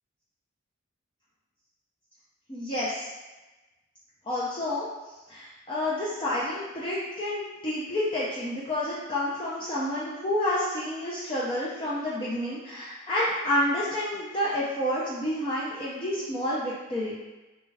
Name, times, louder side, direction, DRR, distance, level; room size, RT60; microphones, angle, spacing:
voice 1, 2.5-3.1 4.2-4.9 5.3-17.2, left 1 dB, 25° left, -8 dB, 0.4 m, -29 dB
3.2 x 2.2 x 3.3 m, 1.1 s
head